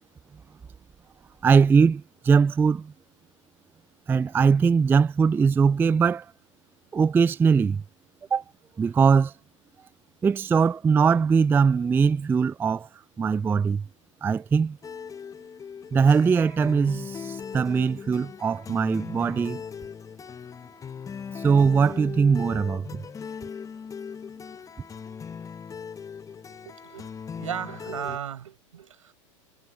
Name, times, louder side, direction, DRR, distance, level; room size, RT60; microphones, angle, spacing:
voice 1, 1.4-2.9 4.1-6.3 6.9-7.8 8.3-8.4 8.8-9.3 10.2-12.9 13.2-13.8 14.2-14.8 15.9-19.6 21.4-23.0, right 5 dB, 10° right, 0.3 m, -21 dB
sound 1, 14.8-28.2, left 6 dB, 20° left, 1.1 m, -39 dB
voice 2, 26.4-27.1 27.4-29.1, right 9 dB, 80° right, 6.7 m, -36 dB
hypercardioid pair, 90°, 17 cm